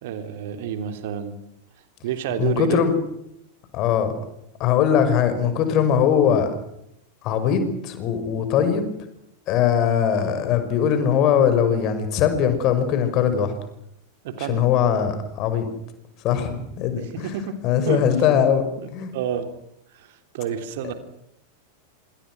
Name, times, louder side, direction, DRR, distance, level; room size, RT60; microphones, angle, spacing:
voice 1, 0.0-1.4 2.0-2.8 14.2-14.6 16.9-17.6 17.9-18.0 18.8-18.9 19.1-19.5 19.9-20.9, right 9 dB, 50° right, 8 dB, 3.3 m, -29 dB
voice 2, 2.4-2.9 3.7-4.1 4.6-6.5 7.2-8.9 9.5-13.5 14.4-15.7 16.2-17.3 17.6-18.6 18.9-19.1, left 8 dB, 40° left, 9 dB, 5.8 m, -21 dB
27.5 x 27.0 x 6.3 m, 0.78 s
figure-of-eight pair, 90°, 0 cm